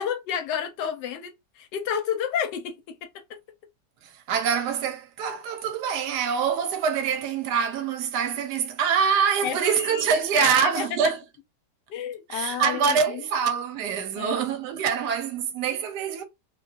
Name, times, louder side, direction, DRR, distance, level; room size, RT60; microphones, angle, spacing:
voice 1, 0.0-3.0 9.4-10.9 11.9-13.2 14.2-14.4, left 8 dB, 80° left, 1.2 m, -31 dB
voice 2, 4.0-11.2 12.3-16.2, right 6 dB, 75° right, 1.1 m, -25 dB
2.8 x 2.3 x 2.3 m
omnidirectional pair, 1.9 m